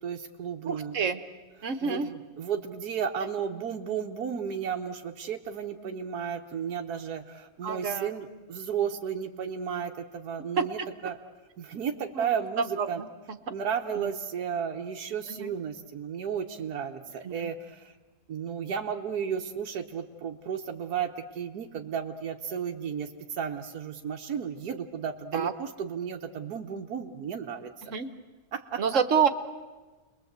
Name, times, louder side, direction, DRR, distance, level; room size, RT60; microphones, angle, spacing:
voice 1, 0.0-1.0 1.6-11.2 11.6-13.0 13.5-17.9 18.3-27.7 28.5-28.8, right 7 dB, 85° right, 3 dB, 1.6 m, -33 dB
voice 2, 0.7-1.2 1.6-2.1 7.6-8.1 10.6-10.9 12.2-13.4 13.9-14.1 15.3-15.5 17.2-17.5 25.3-25.5 27.9-28.1 28.8-29.3, right 6 dB, 55° right, 9 dB, 1.6 m, -28 dB
30.0 x 21.5 x 8.1 m, 1.2 s
omnidirectional pair, 1.6 m